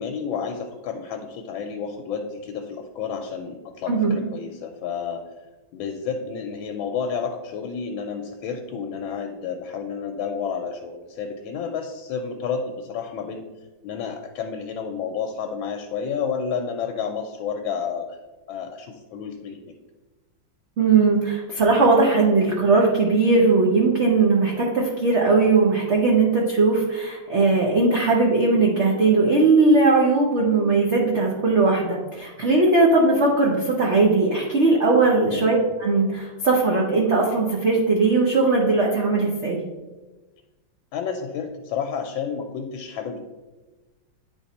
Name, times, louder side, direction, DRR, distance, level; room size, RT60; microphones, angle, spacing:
voice 1, 0.0-5.2 5.7-13.5 13.8-18.2 18.5-19.7 35.2-35.5 40.9-43.2, left 6 dB, 75° left, 4 dB, 1.3 m, -30 dB
voice 2, 3.9-4.2 20.8-39.6, right 3 dB, 55° right, -2 dB, 0.8 m, -19 dB
9.4 x 3.6 x 4.1 m, 1.2 s
omnidirectional pair, 2.3 m